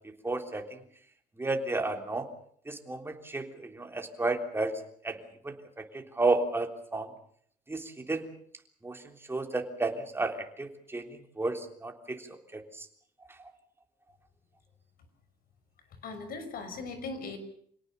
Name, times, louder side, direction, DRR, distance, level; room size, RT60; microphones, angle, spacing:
voice 1, 0.2-0.8 1.4-2.3 2.7-5.2 5.4-7.1 7.7-8.3 8.8-12.9, right 2 dB, 15° right, 5 dB, 3.5 m, -32 dB
voice 2, 16.0-17.4, left 3 dB, 60° left, 10 dB, 6.2 m, -39 dB
27.0 x 18.0 x 6.9 m, 0.62 s
cardioid pair, 110°, 17 cm